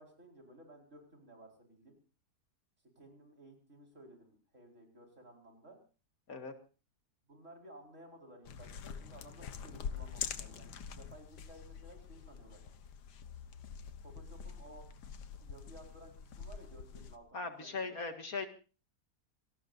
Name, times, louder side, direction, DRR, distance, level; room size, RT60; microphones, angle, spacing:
voice 1, 0.0-2.0 3.0-5.8 7.3-12.6 14.0-14.9 15.4-17.9, right 1 dB, 45° right, 1 dB, 5.0 m, -56 dB
sound 1, 8.4-17.2, left 7 dB, 80° left, 1.7 m, -45 dB
voice 2, 17.3-18.5, left 4 dB, 60° left, 6 dB, 2.3 m, -39 dB
27.0 x 18.5 x 2.6 m, 0.35 s
omnidirectional pair, 1.7 m